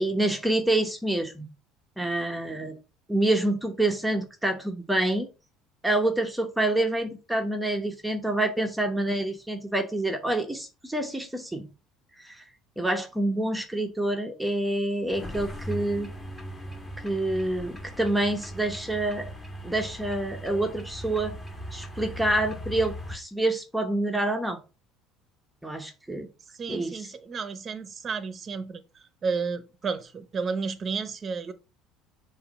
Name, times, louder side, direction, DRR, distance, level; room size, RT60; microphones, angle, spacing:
voice 1, 0.0-1.5 2.0-2.7 3.1-5.3 5.8-11.7 12.2-12.4 12.8-16.1 17.0-19.3 19.6-21.3 21.7-24.6 25.6-26.3 26.7-27.1, right 1 dB, 5° right, 1.0 m, -27 dB
sound 1, 15.1-23.2, equal, 15° left, 1.9 m, -39 dB
voice 2, 26.5-31.5, right 5 dB, 35° right, 0.9 m, -32 dB
6.9 x 2.7 x 5.1 m
supercardioid pair, 110°, 0 cm